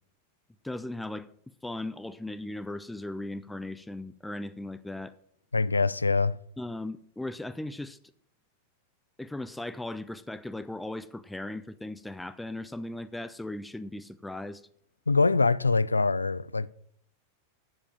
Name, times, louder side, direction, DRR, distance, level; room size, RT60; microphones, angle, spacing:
voice 1, 0.6-1.3 1.6-5.1 6.6-8.0 9.2-14.6, left 1 dB, 5° left, 0.4 m, -37 dB
voice 2, 5.5-6.4 15.1-16.7, left 3 dB, 80° left, 0.3 m, -24 dB
8.5 x 7.5 x 7.3 m
figure-of-eight pair, 90°, 0 cm